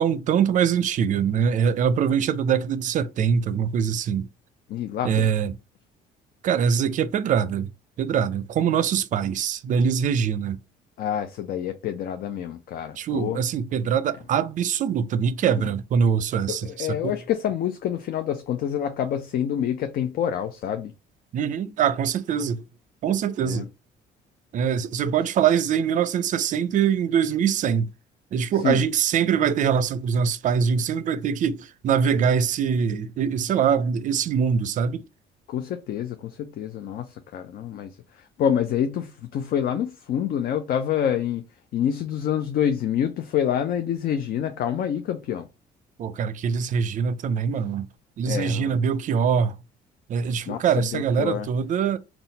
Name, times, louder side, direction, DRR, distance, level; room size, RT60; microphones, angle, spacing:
voice 1, 0.0-4.3 5.0-5.5 6.4-7.7 8.0-10.6 13.0-17.2 21.3-22.6 23.0-23.7 24.5-27.9 28.3-35.0 46.0-47.9 48.2-49.5 50.1-52.0, right 7 dB, 50° right, 0.4 m, -23 dB
voice 2, 4.7-5.3 11.0-13.4 15.6-15.7 16.5-20.9 23.4-23.7 28.6-28.8 35.5-41.4 41.7-45.5 48.3-48.8 50.5-51.5, left 9 dB, 60° left, 0.5 m, -27 dB
4.0 x 2.3 x 4.0 m
cardioid pair, 110°, 17 cm